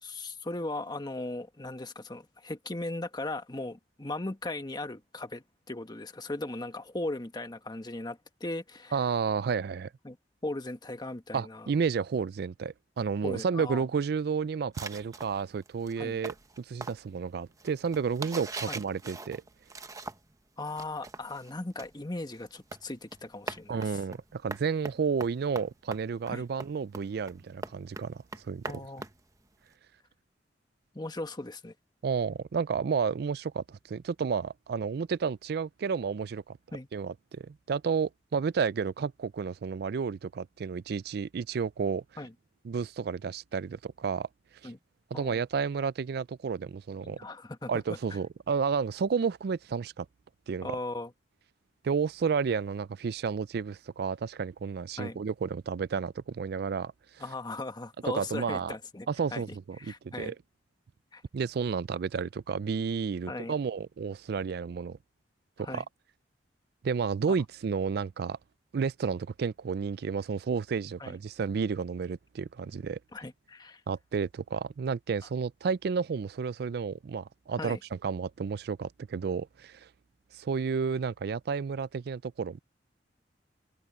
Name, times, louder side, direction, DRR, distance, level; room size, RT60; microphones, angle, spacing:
voice 1, 0.0-9.0 10.0-10.2 10.4-11.7 13.2-13.8 16.0-16.2 18.7-18.8 20.6-24.0 26.3-26.4 28.7-29.0 30.9-31.7 36.7-36.9 42.2-42.3 44.6-44.8 45.1-45.4 47.0-48.2 50.6-51.1 55.0-55.2 57.2-59.4 59.8-60.3 61.1-61.2 63.3-63.5 65.6-65.9 71.0-71.1 73.1-73.8 77.6-77.8, left 2 dB, 25° left, 1.4 m, -38 dB
voice 2, 8.9-9.9 11.3-19.4 23.7-28.7 32.0-36.6 36.9-42.0 42.6-44.3 44.6-44.7 45.1-47.2 47.7-50.1 50.5-50.8 51.8-57.2 58.1-58.7 59.1-60.4 61.3-65.0 65.6-65.8 66.8-68.4 68.7-73.0 73.9-79.9 80.3-82.6, right 5 dB, 65° right, 0.4 m, -31 dB
sound 1, 14.7-20.4 20.7-29.7, right 3 dB, 20° right, 1.0 m, -43 dB
head